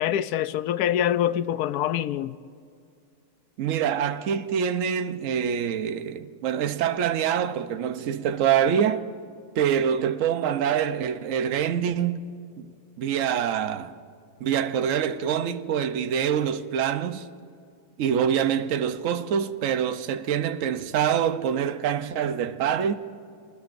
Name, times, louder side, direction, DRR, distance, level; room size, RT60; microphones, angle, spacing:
voice 1, 0.0-2.4, left 11 dB, 75° left, 1.1 m, -25 dB
voice 2, 3.6-9.1 9.6-12.3 12.6-12.7 13.0-13.9 14.4-17.3 18.0-22.9, right 8 dB, 60° right, 1.0 m, -25 dB
27.5 x 20.5 x 2.6 m
omnidirectional pair, 1.7 m